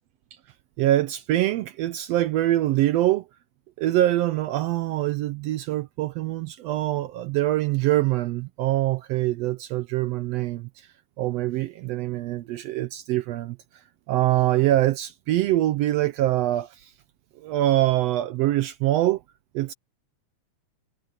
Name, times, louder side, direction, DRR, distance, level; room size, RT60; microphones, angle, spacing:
voice 1, 0.8-3.2 3.8-10.9 11.2-13.6 14.1-16.9 17.4-19.2 19.5-19.7, right 14 dB, 75° right, 1.6 m, -24 dB
omnidirectional pair, 3.3 m